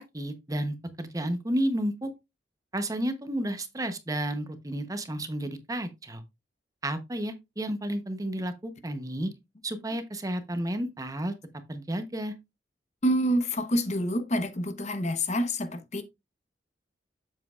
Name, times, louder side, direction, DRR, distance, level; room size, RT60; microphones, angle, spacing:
voice 1, 0.0-2.1 2.7-6.2 6.8-9.3 9.6-11.3 11.7-12.3, right 1 dB, 20° right, 0.8 m, -31 dB
voice 2, 13.0-16.0, equal, 40° left, 0.9 m, -27 dB
7.8 x 7.6 x 2.4 m
head